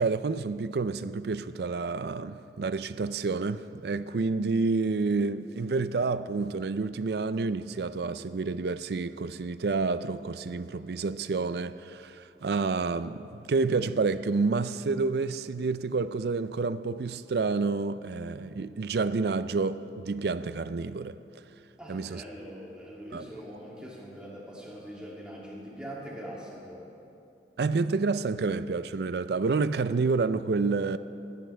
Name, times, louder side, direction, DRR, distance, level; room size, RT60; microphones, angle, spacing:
voice 1, 0.0-21.1 21.9-22.2 23.1-23.2 27.6-31.0, right 4 dB, 65° right, 0.4 m, -29 dB
voice 2, 21.8-26.9, equal, 5° right, 2.6 m, -42 dB
26.0 x 9.9 x 3.4 m
head